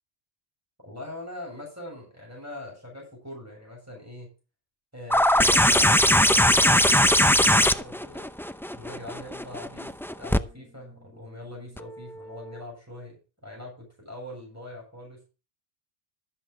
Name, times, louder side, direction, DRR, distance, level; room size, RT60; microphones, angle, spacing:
voice 1, 0.8-4.3 4.9-8.2 8.7-15.2, left 1 dB, 15° right, -2 dB, 7.6 m, -42 dB
sound 1, 5.1-10.4 11.8-11.9, equal, 5° left, 0.4 m, -20 dB
13.0 x 8.1 x 4.3 m, 0.32 s
omnidirectional pair, 1.0 m